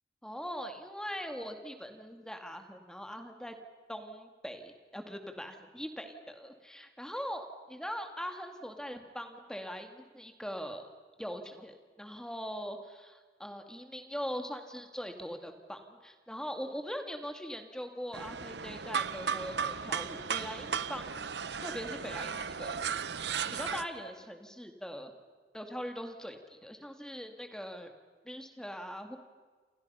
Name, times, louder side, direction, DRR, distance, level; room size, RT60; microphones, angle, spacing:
voice 1, 0.2-3.6 3.9-10.9 11.2-21.3 21.6-22.8 23.5-25.1 25.5-27.9 28.2-29.2, equal, 5° left, 5 dB, 2.1 m, -41 dB
sound 1, 18.1-23.8, right 6 dB, 80° right, 1.0 m, -35 dB
28.5 x 28.5 x 5.7 m, 1.5 s
head